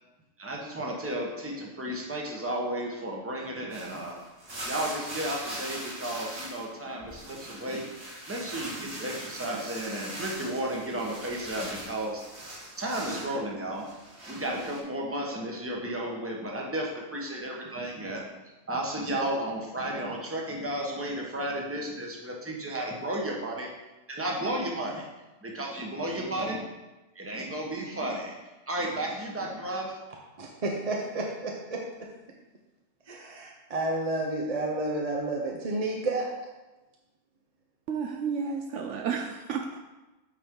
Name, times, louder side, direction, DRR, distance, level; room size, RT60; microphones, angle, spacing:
voice 1, 0.4-4.2 4.6-7.9 8.3-12.2 12.5-13.9 14.3-18.3 18.7-23.7 24.1-25.1 25.4-26.6 27.1-28.4 28.7-30.0, right 1 dB, 10° right, -2 dB, 0.9 m, -33 dB
sound 1, 3.7-6.7 7.0-13.3 13.8-14.8, right 1 dB, 90° right, 2.5 m, -41 dB
voice 2, 30.4-32.1 33.1-36.3, right 2 dB, 35° right, -1 dB, 0.6 m, -31 dB
voice 3, 37.9-39.8, right 6 dB, 70° right, 3 dB, 0.8 m, -32 dB
8.3 x 4.4 x 3.7 m, 1.1 s
omnidirectional pair, 1.4 m